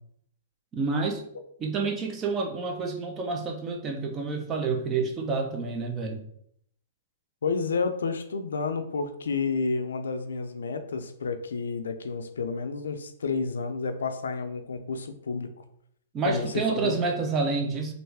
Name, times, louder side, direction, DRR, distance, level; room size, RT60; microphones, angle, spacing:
voice 1, 0.7-1.2 1.6-6.2 16.1-17.9, right 4 dB, 25° right, 3 dB, 0.6 m, -28 dB
voice 2, 7.4-15.5 16.3-17.0, left 4 dB, 90° left, 8 dB, 0.4 m, -30 dB
3.2 x 2.5 x 3.4 m, 0.68 s
hypercardioid pair, 135°, 0 cm